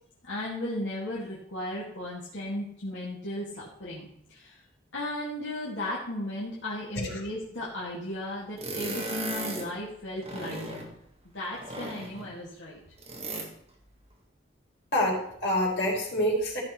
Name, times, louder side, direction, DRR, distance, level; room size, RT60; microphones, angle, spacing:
voice 1, 0.2-4.6 4.9-10.9 11.3-12.8, left 1 dB, 75° left, -6 dB, 2.4 m, -35 dB
sound 1, 8.6-9.7 10.2-10.9 11.5-12.3 13.0-13.5, right 2 dB, 30° right, 1.8 m, -36 dB
voice 2, 14.9-16.6, equal, 60° left, -4 dB, 4.7 m, -27 dB
15.0 x 6.3 x 4.5 m, 0.69 s
head